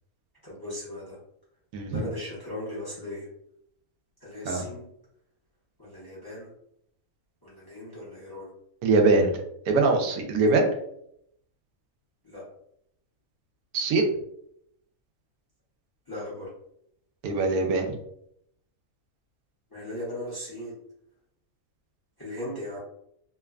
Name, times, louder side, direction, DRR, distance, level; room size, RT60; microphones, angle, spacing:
voice 1, 0.4-1.2 1.8-3.3 4.2-4.9 5.8-6.5 7.4-8.5 12.2-12.5 16.1-16.5 19.7-20.7 22.2-22.8, left 1 dB, 20° left, -7 dB, 0.7 m, -37 dB
voice 2, 8.8-9.3 9.7-10.7 13.7-14.1 17.2-17.9, right 3 dB, 85° right, 3 dB, 1.1 m, -22 dB
3.0 x 2.1 x 2.3 m, 0.73 s
omnidirectional pair, 1.5 m